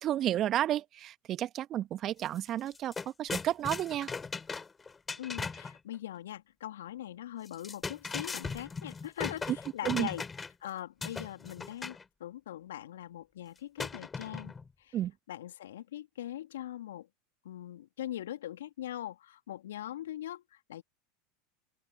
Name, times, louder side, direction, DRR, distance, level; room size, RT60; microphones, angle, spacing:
voice 1, 0.0-2.9 3.2-4.1 9.9-10.1 14.9-15.1, right 12 dB, 40° right, 1.7 m, -31 dB
sound 1, 2.3-2.4 2.7-5.8 7.5-10.7 11.0-12.0 13.8-14.7, left 4 dB, 20° left, 6.9 m, -38 dB
voice 2, 5.2-10.3 10.6-15.0 15.3-17.1 17.4-20.8, left 12 dB, 70° left, 2.6 m, -41 dB
open air
figure-of-eight pair, 80°, 0 cm